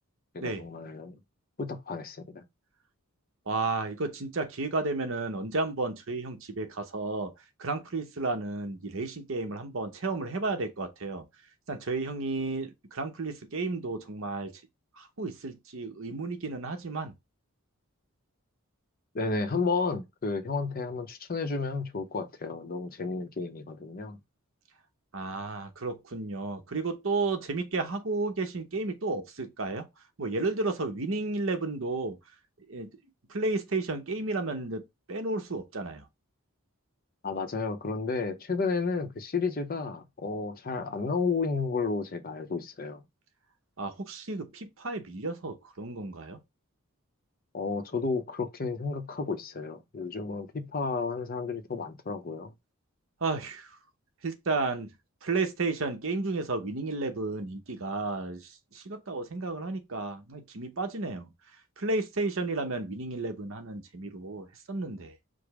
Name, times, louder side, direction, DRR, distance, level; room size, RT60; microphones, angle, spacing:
voice 1, 0.3-1.2 1.6-2.4 19.1-24.2 37.2-43.0 47.5-52.5, left 4 dB, 40° left, 0.6 m, -32 dB
voice 2, 3.5-7.3 7.6-11.2 11.7-14.5 15.0-17.1 25.1-29.9 30.2-32.2 32.7-32.9 33.3-36.1 43.8-46.4 53.2-53.7 54.2-54.9 55.2-61.3 61.8-65.2, right 3 dB, 60° right, 0.8 m, -32 dB
5.0 x 2.0 x 4.8 m
head